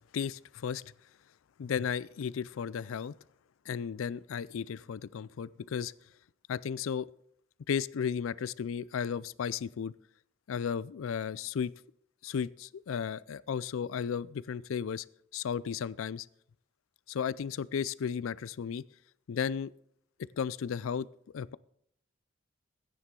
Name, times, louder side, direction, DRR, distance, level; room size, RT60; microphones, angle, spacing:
voice 1, 0.1-0.8 1.6-3.1 3.7-5.9 6.5-7.1 7.7-9.9 10.5-11.7 12.2-15.0 15.3-16.3 17.1-18.8 19.3-19.7 20.4-21.1 21.3-21.6, left 7 dB, 90° left, 20 dB, 0.4 m, -34 dB
13.5 x 9.7 x 3.8 m, 0.71 s
head